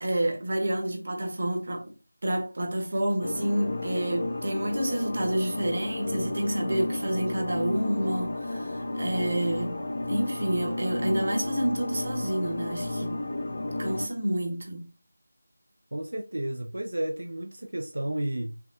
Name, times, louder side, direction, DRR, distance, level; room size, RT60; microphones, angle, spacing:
voice 1, 0.0-1.9 2.2-13.2 13.8-14.9, right 1 dB, 45° right, 1.2 m, -29 dB
sound 1, 3.2-14.1, left 2 dB, 50° left, 0.5 m, -32 dB
voice 2, 15.9-18.5, right 1 dB, 75° right, 0.6 m, -32 dB
5.8 x 2.3 x 2.7 m
figure-of-eight pair, 170°, 0 cm